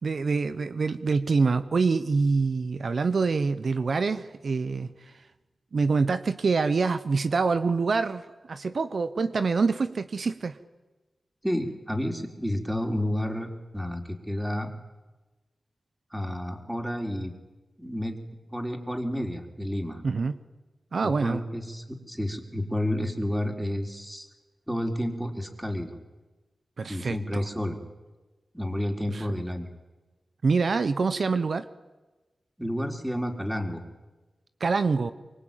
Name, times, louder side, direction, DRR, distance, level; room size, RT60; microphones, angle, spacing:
voice 1, 0.0-5.1 5.7-8.2 8.5-10.6 20.0-20.3 20.9-21.4 26.8-27.5 29.1-29.3 30.4-31.7 34.6-35.1, right 4 dB, 70° right, 11 dB, 1.1 m, -25 dB
voice 2, 11.4-13.5 13.7-14.7 16.1-17.3 17.8-18.2 18.5-20.0 21.0-24.3 24.7-26.0 26.9-27.8 28.5-29.7 32.6-33.8, left 1 dB, 5° right, 4 dB, 4.1 m, -30 dB
24.5 x 23.5 x 9.1 m, 1.2 s
cardioid pair, 60°, 0 cm